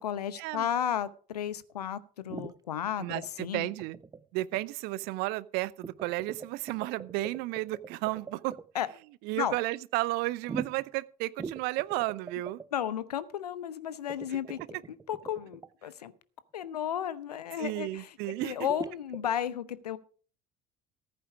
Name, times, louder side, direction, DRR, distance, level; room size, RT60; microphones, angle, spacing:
voice 1, 0.0-3.7 8.7-8.9 9.4-9.6 12.7-14.6 14.9-16.1 16.5-18.2 18.4-20.0, left 9 dB, 75° left, 0.8 m, -33 dB
sound 1, 2.3-2.6 3.1-3.5 3.8-4.2 4.5-4.6 5.8-8.7 10.4-10.9 11.4-12.7 14.1-15.7 18.4-19.3, right 5 dB, 20° right, 0.7 m, -41 dB
voice 2, 3.0-4.0 4.3-8.6 9.2-12.6 17.6-18.5, right 19 dB, 55° right, 0.6 m, -33 dB
14.5 x 8.7 x 4.7 m
figure-of-eight pair, 60°, 20 cm